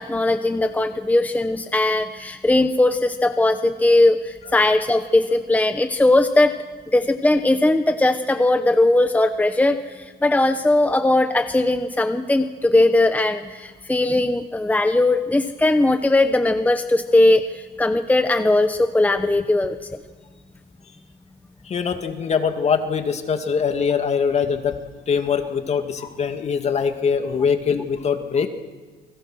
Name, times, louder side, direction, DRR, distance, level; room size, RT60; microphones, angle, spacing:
voice 1, 0.0-6.5 6.9-19.9, left 2 dB, 10° left, 8 dB, 1.0 m, -19 dB
voice 2, 21.7-24.8 25.1-28.5, left 6 dB, 40° left, 6 dB, 2.3 m, -22 dB
29.0 x 22.0 x 6.4 m, 1.4 s
cardioid pair, 110°, 17 cm